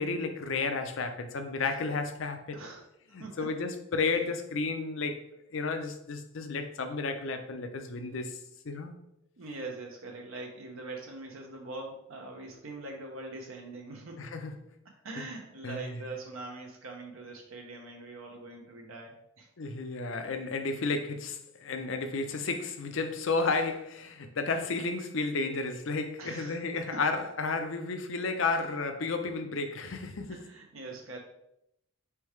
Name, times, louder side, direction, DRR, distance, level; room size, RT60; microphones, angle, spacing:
voice 1, 0.0-2.6 3.1-5.2 5.5-8.4 8.6-8.9 14.2-14.5 15.6-16.0 19.6-30.5, left 3 dB, 65° left, 0.5 m, -32 dB
voice 2, 9.4-14.3 15.0-19.5 26.2-27.0 30.3-31.2, right 2 dB, 80° right, 0.8 m, -43 dB
4.6 x 3.4 x 3.1 m
head